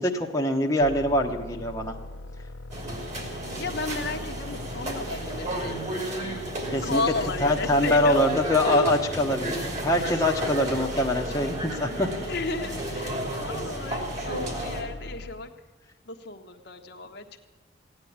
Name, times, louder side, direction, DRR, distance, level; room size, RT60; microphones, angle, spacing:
voice 1, 0.0-1.9 6.7-7.0 7.4-12.1, left 1 dB, 15° left, -1 dB, 1.2 m, -24 dB
sound 1, 0.8-15.5, left 2 dB, 85° left, 1.0 m, -41 dB
sound 2, 2.7-14.8, right 1 dB, 35° right, 3.1 m, -33 dB
voice 2, 3.6-6.5 6.8-8.3 10.0-10.1 12.3-15.5 16.1-17.4, left 3 dB, 55° left, 4 dB, 1.3 m, -33 dB
16.0 x 9.9 x 8.7 m, 1.3 s
head